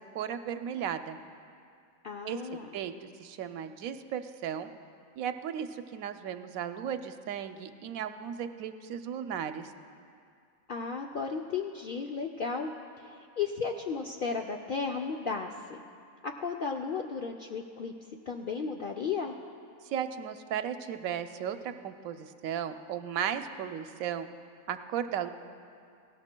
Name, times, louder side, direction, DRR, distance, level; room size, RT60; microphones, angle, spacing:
voice 1, 0.1-1.2 2.2-2.4 2.7-4.7 5.2-9.7 19.8-24.3 24.7-25.3, right 9 dB, 80° right, 9 dB, 1.0 m, -35 dB
voice 2, 2.0-2.7 10.7-12.7 13.0-15.8 16.2-17.9 18.3-19.3, left 5 dB, 65° left, 2 dB, 0.5 m, -34 dB
19.5 x 17.0 x 2.2 m, 2.3 s
omnidirectional pair, 1.5 m